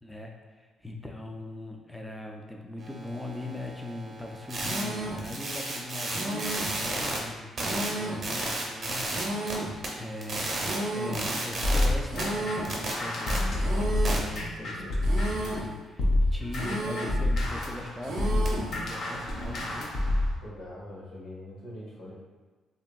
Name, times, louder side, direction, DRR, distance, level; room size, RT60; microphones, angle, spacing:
voice 1, 0.0-10.6 10.9-19.9, left 2 dB, 5° left, 1 dB, 0.3 m, -40 dB
sound 1, 2.8-7.2 7.6-9.5 9.8-11.8 12.2-13.4 14.0-14.2 18.5-19.7, right 2 dB, 50° right, 0.8 m, -35 dB
sound 2, 4.6-5.3 6.1-6.8 7.6-8.3 9.1-9.8 10.6-11.3 12.1-12.8 13.6-14.3 15.0-15.7 16.5-17.2 18.0-18.7, right 1 dB, 80° right, 0.5 m, -33 dB
voice 2, 8.0-8.4 13.0-13.6 14.6-15.0 20.4-22.1, left 1 dB, 85° left, -6 dB, 1.0 m, -43 dB
sound 3, 11.6-15.6 16.0-20.4, left 1 dB, 65° left, 0.5 m, -28 dB
2.9 x 2.6 x 2.2 m, 1.3 s
cardioid pair, 90°, 0 cm